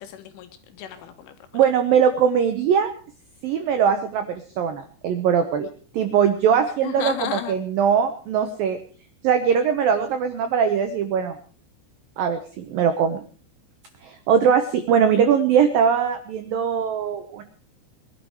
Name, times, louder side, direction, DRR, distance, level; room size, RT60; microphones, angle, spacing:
voice 1, 0.0-1.4 6.8-7.5, left 10 dB, 85° left, 8 dB, 4.0 m, -33 dB
voice 2, 1.5-2.9 3.4-5.7 5.9-8.8 9.2-11.4 12.2-13.2 14.0-17.4, right 7 dB, 80° right, 8 dB, 2.0 m, -21 dB
21.0 x 12.0 x 4.8 m, 0.42 s
omnidirectional pair, 5.5 m